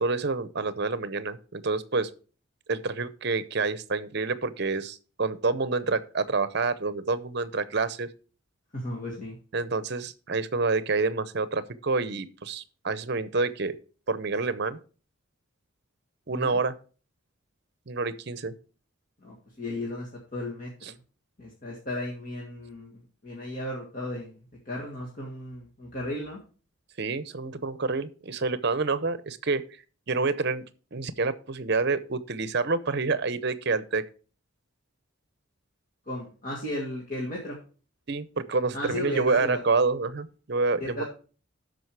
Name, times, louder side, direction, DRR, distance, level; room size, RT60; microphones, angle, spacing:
voice 1, 0.0-2.1 2.7-8.1 9.5-13.8 14.1-14.8 16.3-16.8 17.9-18.5 27.0-29.6 30.1-30.6 30.9-34.0 38.1-41.0, right 3 dB, 55° right, 15 dB, 0.7 m, -28 dB
voice 2, 8.7-9.4 16.3-16.6 19.2-21.0 21.4-24.4 24.7-26.4 36.1-37.6 38.7-39.6 40.8-41.0, left 1 dB, 40° left, -3 dB, 2.0 m, -35 dB
12.5 x 5.1 x 4.7 m, 0.38 s
head